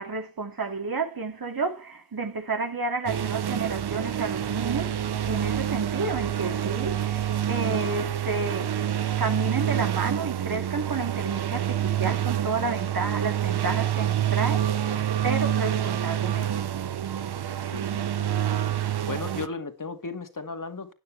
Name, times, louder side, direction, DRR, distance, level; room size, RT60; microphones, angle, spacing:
voice 1, 0.0-16.7, right 4 dB, 65° right, 2.4 m, -31 dB
sound 1, 3.1-19.5, right 10 dB, 85° right, 0.8 m, -27 dB
voice 2, 17.7-18.3 18.9-20.9, left 4 dB, 55° left, 2.2 m, -36 dB
12.5 x 9.4 x 3.4 m
cardioid pair, 40°, 38 cm